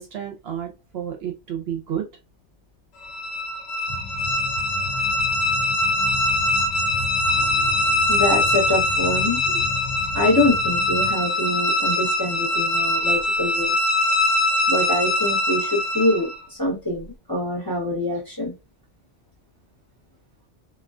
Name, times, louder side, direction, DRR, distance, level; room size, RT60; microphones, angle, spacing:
voice 1, 0.0-2.1, right 9 dB, 65° right, 3 dB, 0.8 m, -31 dB
sound 1, 3.0-16.4, left 1 dB, 85° left, 0.9 m, -22 dB
sound 2, 3.9-11.1, left 4 dB, 50° left, 0.6 m, -34 dB
voice 2, 7.4-7.7 8.1-9.6 10.1-13.7 14.7-18.5, left 1 dB, 20° left, -4 dB, 1.0 m, -25 dB
2.3 x 2.3 x 2.3 m, 0.25 s
omnidirectional pair, 1.2 m